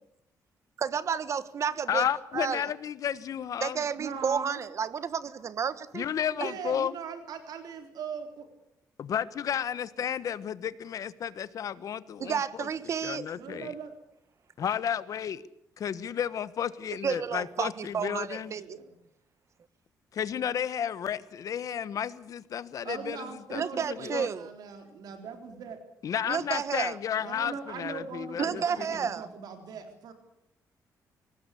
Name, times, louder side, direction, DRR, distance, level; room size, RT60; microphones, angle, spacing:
voice 1, 0.8-2.0 2.3-2.6 3.6-6.0 12.2-13.3 17.0-18.6 23.5-24.5 26.3-26.9 28.4-29.3, right 7 dB, 45° right, 16 dB, 1.4 m, -31 dB
voice 2, 1.9-3.8 5.9-6.9 9.0-12.7 13.0-13.7 14.6-15.4 15.8-18.5 20.1-24.3 26.0-29.1, left 9 dB, 60° left, 16 dB, 1.2 m, -32 dB
voice 3, 4.0-4.6 6.4-8.5 13.4-13.9 18.4-18.9 22.8-25.8 27.2-30.1, right 6 dB, 75° right, 6 dB, 3.8 m, -40 dB
24.0 x 19.0 x 8.4 m, 0.77 s
cardioid pair, 130°, 7 cm